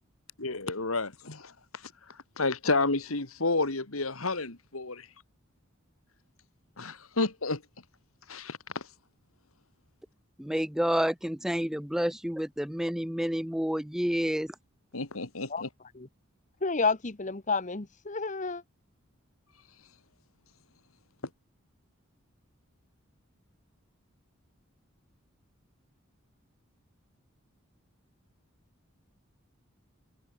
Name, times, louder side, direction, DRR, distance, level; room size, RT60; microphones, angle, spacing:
voice 1, 0.4-1.1 1.8-5.1 6.8-7.6 8.3-8.9 14.9-15.7, left 3 dB, 85° left, 2.7 m, -30 dB
voice 2, 10.4-14.5, equal, ahead, 0.5 m, -29 dB
voice 3, 16.6-18.6, left 4 dB, 35° left, 1.1 m, -30 dB
head